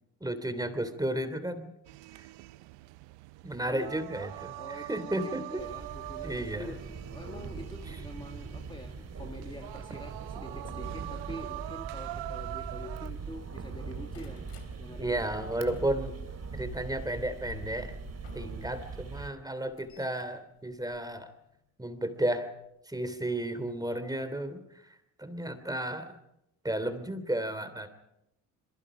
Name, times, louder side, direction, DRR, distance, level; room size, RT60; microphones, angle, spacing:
voice 1, 0.2-1.7 2.1-2.3 3.4-5.6 6.2-6.7 15.0-16.2 16.5-17.9 18.3-21.3 21.8-22.5 22.9-24.6 25.2-26.1 26.6-27.9, right 1 dB, 10° right, 10 dB, 3.2 m, -33 dB
sound 1, 1.9-13.1, right 17 dB, 75° right, 0.9 m, -43 dB
voice 2, 4.5-14.5 14.8-15.2, left 1 dB, 10° left, 3 dB, 2.3 m, -46 dB
sound 2, 5.6-19.3, right 5 dB, 35° right, 3.0 m, -41 dB
sound 3, 10.5-13.2 13.5-14.7 15.2-19.0 19.4-21.6 22.6-22.8 23.3-23.4 23.6-23.7, left 8 dB, 70° left, 3.6 m, -52 dB
28.5 x 22.0 x 5.1 m, 0.83 s
supercardioid pair, 65°, 44 cm